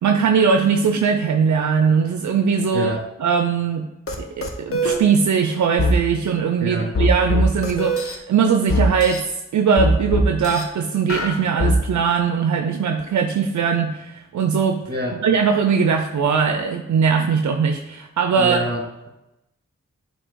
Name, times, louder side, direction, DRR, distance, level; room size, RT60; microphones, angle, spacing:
voice 1, 0.0-2.9 3.2-3.9 4.2-14.8 15.2-18.6, right 6 dB, 75° right, 5 dB, 0.5 m, -20 dB
voice 2, 2.7-3.1 6.6-6.9 14.9-15.2 18.4-19.1, right 1 dB, 35° right, 0 dB, 1.9 m, -26 dB
sound 1, 4.1-4.2 4.4-5.0 5.8-6.0 6.9-8.2 8.7-9.2 9.8-10.6 11.1-11.8, left 1 dB, 50° left, 1.0 m, -20 dB
7.5 x 2.8 x 4.6 m, 0.92 s
cardioid pair, 45°, 30 cm